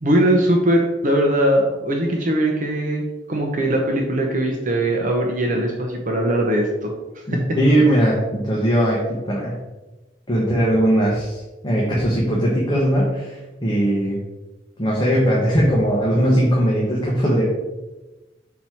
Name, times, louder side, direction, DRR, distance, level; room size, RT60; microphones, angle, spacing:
voice 1, 0.0-7.4, right 1 dB, 45° right, 1 dB, 0.8 m, -20 dB
voice 2, 7.3-9.0 9.2-9.5 10.3-14.2 14.8-17.4, equal, 25° left, -4 dB, 1.1 m, -19 dB
6.0 x 4.2 x 4.4 m, 1.1 s
head